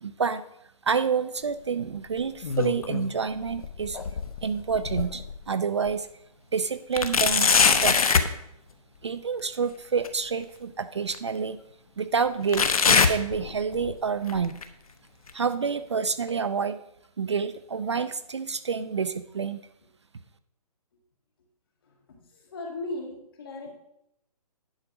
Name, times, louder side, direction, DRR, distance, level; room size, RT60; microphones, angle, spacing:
voice 1, 0.0-0.4 0.8-4.0 4.4-6.1 6.5-8.2 9.0-11.6 12.0-14.6 15.3-16.8 17.2-19.6, right 5 dB, 45° right, 13 dB, 0.5 m, -28 dB
sound 1, 2.2-3.1 3.5-5.4 5.9-6.0 6.9-8.3 10.0-10.1 11.1-11.2 12.5-13.9 14.3-14.6 15.3-15.4 16.3-16.4, left 5 dB, 65° left, 1.0 m, -23 dB
voice 2, 21.8-23.7, left 2 dB, 35° left, 0 dB, 2.2 m, -38 dB
10.5 x 5.1 x 5.9 m, 0.77 s
hypercardioid pair, 175°, 20 cm